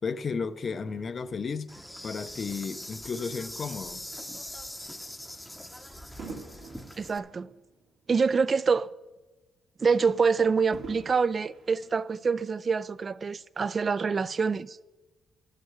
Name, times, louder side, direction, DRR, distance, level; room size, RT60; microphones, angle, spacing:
voice 1, 0.0-1.7 2.0-4.1, left 5 dB, 45° left, 0.6 m, -33 dB
Fireworks, 0.9-3.4 4.1-4.3 6.2-8.7 9.1-9.2 10.7-12.6 13.3-13.4, right 4 dB, 65° right, 2.3 m, -47 dB
Insect, 1.7-7.2, left 1 dB, 5° left, 0.8 m, -42 dB
voice 2, 7.0-7.5 8.1-8.9 9.8-14.8, right 5 dB, 40° right, 0.4 m, -26 dB
10.5 x 6.6 x 7.9 m
cardioid pair, 90°, 0 cm